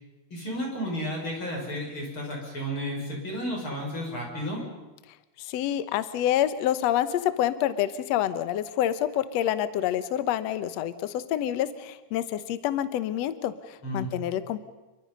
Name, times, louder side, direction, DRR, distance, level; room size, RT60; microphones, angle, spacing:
voice 1, 0.3-4.6 13.8-14.1, equal, 30° left, 0 dB, 6.9 m, -32 dB
voice 2, 5.5-14.6, left 11 dB, 80° left, 12 dB, 1.5 m, -27 dB
29.5 x 23.5 x 5.5 m, 1.1 s
omnidirectional pair, 4.6 m